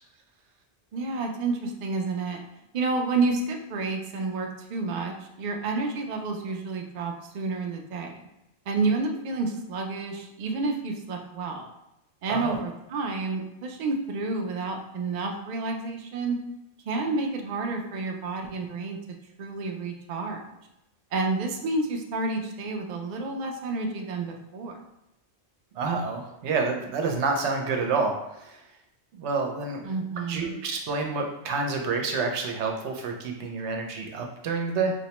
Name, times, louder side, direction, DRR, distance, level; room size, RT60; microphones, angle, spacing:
voice 1, 0.9-2.4 2.7-8.3 8.7-11.7 12.2-16.4 16.9-19.0 19.4-20.4 21.1-24.8 29.8-30.6, right 3 dB, 60° right, 2 dB, 0.5 m, -30 dB
voice 2, 25.8-28.6 29.1-29.8 30.3-34.9, right 4 dB, 85° right, 2 dB, 0.9 m, -28 dB
4.3 x 2.1 x 2.9 m, 0.88 s
omnidirectional pair, 1.2 m